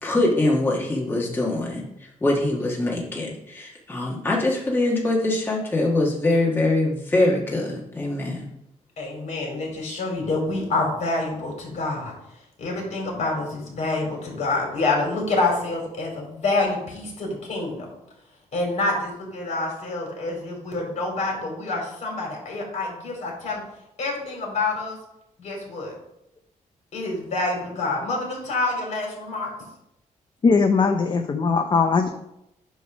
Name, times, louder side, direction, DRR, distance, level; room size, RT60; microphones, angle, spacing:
voice 1, 0.0-1.8 2.2-8.5, left 2 dB, 15° left, -3 dB, 1.5 m, -23 dB
voice 2, 9.0-12.1 12.6-17.9 18.5-23.6 24.0-25.0 25.4-25.9 26.9-29.5, left 2 dB, 55° left, 0 dB, 3.0 m, -27 dB
voice 3, 30.4-32.1, left 4 dB, 35° left, 6 dB, 0.6 m, -20 dB
9.1 x 3.1 x 6.0 m, 0.82 s
cardioid pair, 120°, 14 cm